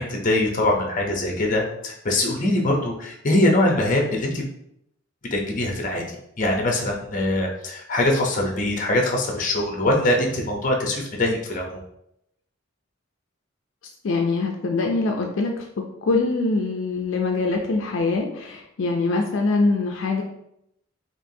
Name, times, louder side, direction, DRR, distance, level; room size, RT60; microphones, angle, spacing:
voice 1, 0.0-4.4 5.3-6.0 6.4-11.8, left 1 dB, 40° left, 1 dB, 0.7 m, -22 dB
voice 2, 14.0-15.6 16.0-20.2, left 3 dB, 75° left, 2 dB, 0.4 m, -23 dB
4.4 x 2.9 x 2.7 m, 0.77 s
head